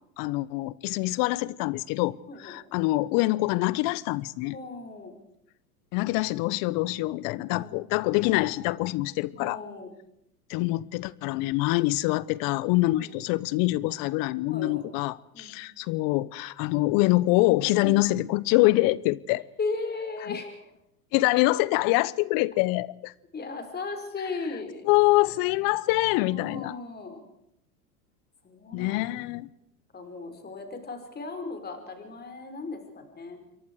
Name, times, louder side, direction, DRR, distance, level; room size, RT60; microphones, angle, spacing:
voice 1, 0.2-4.6 5.9-9.6 10.5-19.4 20.3-20.4 21.1-23.1 24.8-26.8 28.7-29.5, left 20 dB, 45° left, 1.0 m, -25 dB
voice 2, 2.3-2.6 4.5-5.2 7.3-7.8 9.4-9.9 12.9-13.1 14.5-14.9 15.3-15.6 17.8-18.0 19.6-20.6 23.3-24.9 26.2-27.2 28.4-29.1 29.9-33.4, left 3 dB, 20° left, 5.5 m, -36 dB
27.5 x 23.5 x 4.9 m
hypercardioid pair, 100°, 46 cm